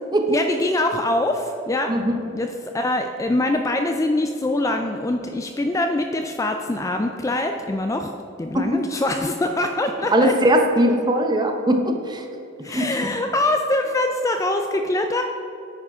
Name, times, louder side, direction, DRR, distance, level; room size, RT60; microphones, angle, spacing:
voice 1, 0.3-1.9 2.3-8.1 8.4-10.3 12.6-15.2, left 2 dB, 15° left, 5 dB, 0.3 m, -23 dB
voice 2, 10.1-12.2 12.7-12.8, right 1 dB, 20° right, 4 dB, 0.7 m, -20 dB
9.9 x 4.8 x 4.8 m, 2.8 s
head